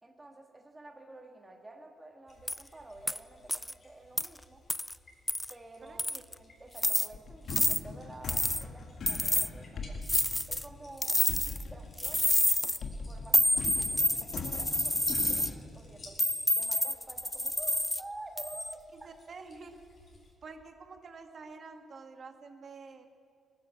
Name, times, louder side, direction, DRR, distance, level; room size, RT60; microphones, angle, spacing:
voice 1, 0.0-4.6 5.5-10.0 10.5-11.2 11.7-12.4 13.1-16.2 16.5-19.1, right 2 dB, 15° right, 3 dB, 1.5 m, -50 dB
sound 1, 2.3-20.3, left 2 dB, 40° left, 4.1 m, -57 dB
sound 2, 2.5-2.6 3.1-3.2 3.5-3.7 4.2-4.3 4.7-4.9 5.3-5.5 6.0-6.3 6.8-7.1 7.5-7.8 8.3-8.6 9.1-9.5 10.1-10.6 11.0-11.6 12.0-12.8 13.3-15.5 16.2-18.0 18.4-18.7, left 1 dB, 5° left, 0.4 m, -28 dB
voice 2, 5.8-6.2 19.0-19.7 20.4-23.1, right 4 dB, 45° right, 5 dB, 1.7 m, -48 dB
sound 3, 7.1-12.4 12.8-15.6, left 4 dB, 60° left, 1.5 m, -41 dB
19.0 x 10.0 x 7.1 m, 2.4 s
cardioid pair, 90°, 0 cm